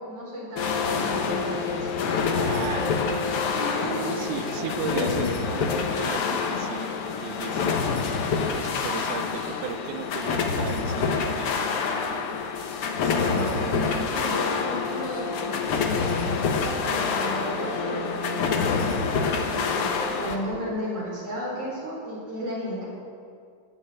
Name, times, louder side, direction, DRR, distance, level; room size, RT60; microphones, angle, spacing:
voice 1, 0.0-2.6 3.5-4.5 4.9-5.3 13.0-22.8, equal, 45° right, -5 dB, 5.3 m, -34 dB
sound 1, 0.6-20.4, left 5 dB, 65° left, 1.4 m, -27 dB
voice 2, 2.5-2.9 4.0-6.9 7.2-7.8 8.6-11.7, right 10 dB, 80° right, 10 dB, 1.9 m, -36 dB
18.5 x 6.7 x 8.7 m, 2.3 s
omnidirectional pair, 4.0 m